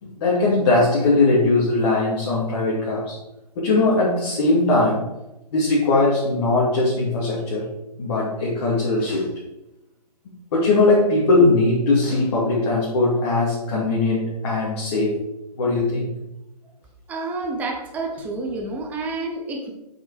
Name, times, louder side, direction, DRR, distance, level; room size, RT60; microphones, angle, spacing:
voice 1, 0.0-3.1 3.6-5.1 5.5-7.7 8.0-9.2 10.5-15.2 15.6-16.1, left 2 dB, 40° left, -7 dB, 2.6 m, -20 dB
voice 2, 17.1-19.7, right 3 dB, 5° right, 1 dB, 0.7 m, -29 dB
7.5 x 5.5 x 4.9 m, 0.92 s
figure-of-eight pair, 145°, 21 cm